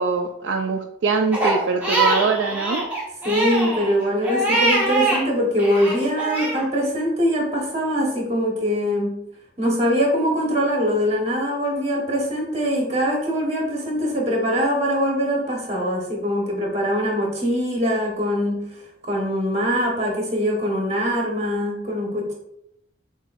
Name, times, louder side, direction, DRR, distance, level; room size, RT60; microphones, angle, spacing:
voice 1, 0.0-2.9, right 4 dB, 70° right, 4 dB, 0.3 m, -23 dB
Crying sobbing, 1.3-5.2 5.6-6.6, right 2 dB, 10° right, 1.2 m, -23 dB
voice 2, 3.2-9.2 9.6-18.6 19.0-22.3, equal, 35° right, -2 dB, 1.2 m, -22 dB
6.6 x 2.7 x 2.5 m, 0.79 s
head